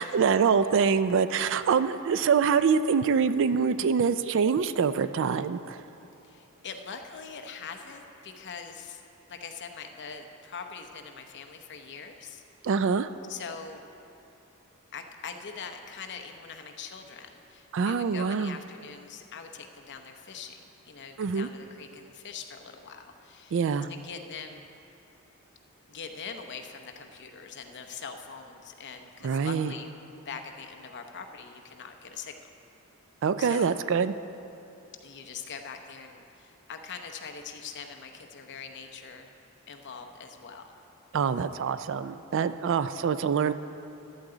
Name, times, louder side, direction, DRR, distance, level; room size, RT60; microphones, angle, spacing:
voice 1, 0.0-5.8 12.6-13.1 17.7-18.6 21.2-21.5 23.5-23.9 29.2-29.7 33.2-34.1 41.1-43.5, right 6 dB, 60° right, 13 dB, 0.4 m, -25 dB
voice 2, 6.2-9.0 9.3-12.4 13.3-13.8 14.9-23.6 23.9-24.6 25.9-30.0 30.2-32.4 33.4-33.8 35.0-39.3 39.7-40.7, left 5 dB, 55° left, 5 dB, 0.8 m, -42 dB
14.5 x 11.0 x 3.9 m, 2.8 s
head